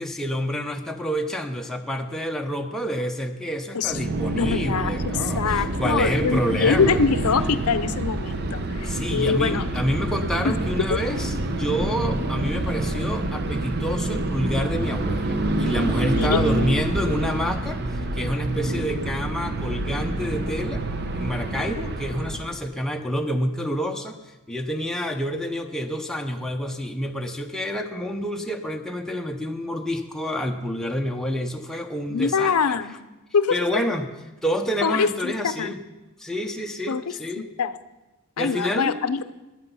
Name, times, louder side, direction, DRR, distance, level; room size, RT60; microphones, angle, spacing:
voice 1, 0.0-7.0 8.8-20.8 21.1-24.2 24.5-32.8 33.5-34.1 34.4-35.8 36.2-37.5 38.4-39.0, equal, ahead, 2 dB, 0.7 m, -28 dB
sound 1, 3.8-22.6, right 2 dB, 50° right, 0.7 m, -27 dB
voice 2, 4.3-9.7 10.4-10.6 10.9-11.0 16.2-16.4 32.1-33.0 33.3-33.8 34.8-35.7 36.9-37.0 37.4-37.8 38.4-39.2, left 5 dB, 85° left, 13 dB, 0.6 m, -24 dB
12.5 x 9.0 x 5.4 m, 1.1 s
head